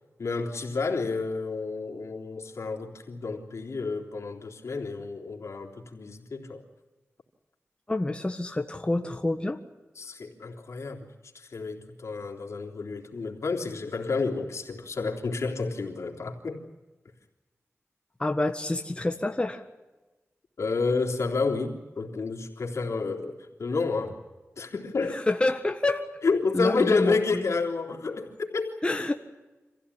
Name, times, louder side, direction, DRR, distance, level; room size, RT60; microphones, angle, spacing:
voice 1, 0.2-6.6 10.0-11.1 11.3-16.6 20.6-24.2 24.6-25.2 26.2-28.7, left 4 dB, 80° left, 1 dB, 3.6 m, -30 dB
voice 2, 7.9-9.6 18.2-19.6 25.1-26.2 26.5-27.4 28.8-29.1, left 2 dB, 20° left, 4 dB, 1.6 m, -28 dB
26.0 x 16.0 x 9.9 m, 1.2 s
wide cardioid pair, 90°, 5 cm